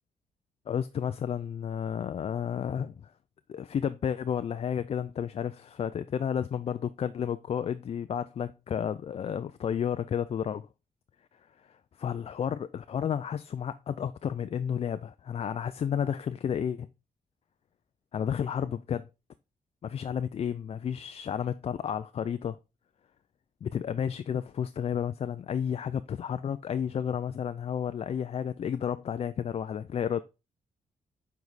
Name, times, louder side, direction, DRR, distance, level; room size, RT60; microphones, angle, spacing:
voice 1, 0.7-3.1 3.5-10.7 12.0-16.9 18.1-19.1 19.8-22.6 23.6-30.2, left 8 dB, 50° left, 0.4 m, -32 dB
7.1 x 4.7 x 4.1 m
cardioid pair, 95°, 13 cm